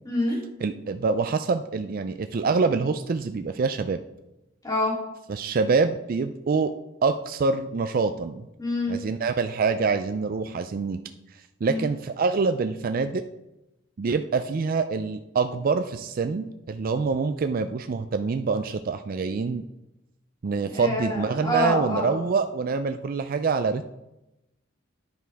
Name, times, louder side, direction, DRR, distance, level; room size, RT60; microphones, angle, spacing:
voice 1, 0.0-0.4 4.6-4.9 8.6-8.9 11.6-11.9 20.7-22.1, left 1 dB, 20° left, -4 dB, 3.0 m, -26 dB
voice 2, 0.6-4.0 5.3-6.7 7.0-8.5 8.9-11.0 11.6-13.2 14.0-19.6 20.4-23.8, right 4 dB, 45° right, 9 dB, 0.4 m, -25 dB
9.9 x 9.3 x 3.4 m, 0.94 s
head